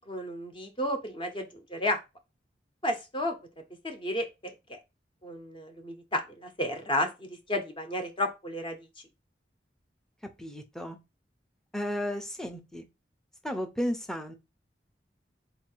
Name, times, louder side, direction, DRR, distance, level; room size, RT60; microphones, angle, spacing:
voice 1, 0.1-2.0 2.8-3.3 3.8-4.3 4.7-4.8 5.2-8.8, left 1 dB, 30° left, 1.0 m, -32 dB
voice 2, 10.4-11.0 11.7-12.8 13.4-14.3, equal, 5° left, 0.7 m, -33 dB
4.1 x 2.8 x 4.5 m
head